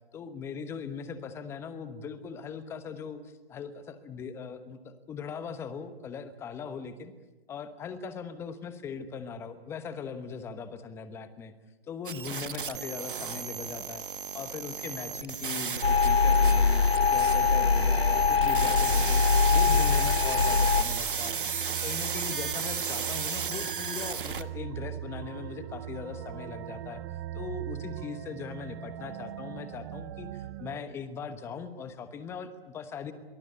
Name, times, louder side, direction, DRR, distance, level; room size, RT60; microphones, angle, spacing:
voice 1, 0.1-7.1 7.5-11.5 11.9-14.0 14.3-16.8 17.1-19.2 19.5-21.3 21.7-27.0 27.3-33.1, left 6 dB, 10° left, 11 dB, 1.1 m, -40 dB
sound 1, 12.0-24.4, right 6 dB, 60° right, 1.3 m, -34 dB
sound 2, 15.8-20.8, left 5 dB, 90° left, 1.3 m, -23 dB
sound 3, 18.8-30.8, right 11 dB, 20° right, 0.8 m, -40 dB
23.0 x 21.5 x 8.5 m, 1.2 s
figure-of-eight pair, 145°, 29 cm